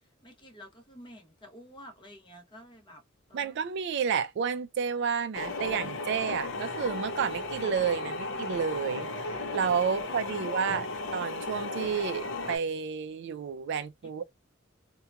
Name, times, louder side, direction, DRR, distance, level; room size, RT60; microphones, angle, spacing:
voice 1, 0.0-3.0 3.3-3.6 14.0-14.1, equal, 25° left, 0.9 m, -51 dB
voice 2, 3.3-14.2, right 7 dB, 60° right, 0.4 m, -31 dB
sound 1, 5.3-12.6, left 2 dB, 65° left, 0.6 m, -35 dB
2.8 x 2.2 x 2.3 m
head